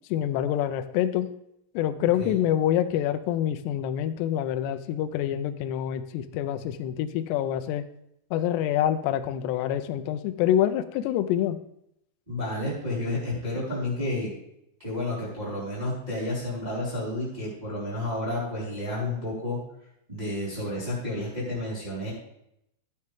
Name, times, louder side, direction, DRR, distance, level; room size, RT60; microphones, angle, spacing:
voice 1, 0.1-1.3 1.8-7.8 8.3-11.6, left 11 dB, 90° left, 9 dB, 2.4 m, -26 dB
voice 2, 2.0-2.4 12.3-14.3 14.8-19.6 20.1-22.1, left 1 dB, 10° right, -8 dB, 4.1 m, -31 dB
13.0 x 9.4 x 3.6 m, 0.78 s
omnidirectional pair, 5.7 m